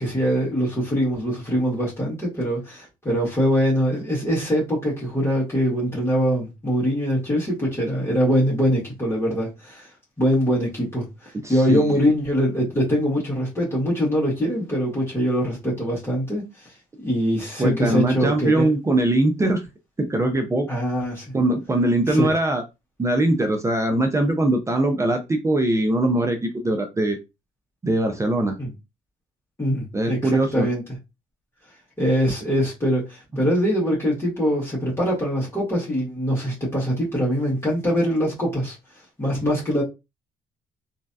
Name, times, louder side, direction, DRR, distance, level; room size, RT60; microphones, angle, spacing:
voice 1, 0.0-9.9 10.2-16.4 17.0-18.6 20.7-21.3 22.1-22.3 28.6-28.7 29.6-30.8 32.0-38.8 39.2-39.8, equal, 15° left, 1.7 m, -23 dB
voice 2, 11.4-12.0 17.6-19.6 20.0-20.7 21.3-22.6 23.0-27.2 27.8-28.6 29.9-30.7, right 1 dB, 15° right, 0.5 m, -21 dB
3.1 x 2.7 x 2.2 m
cardioid pair, 110°, 17 cm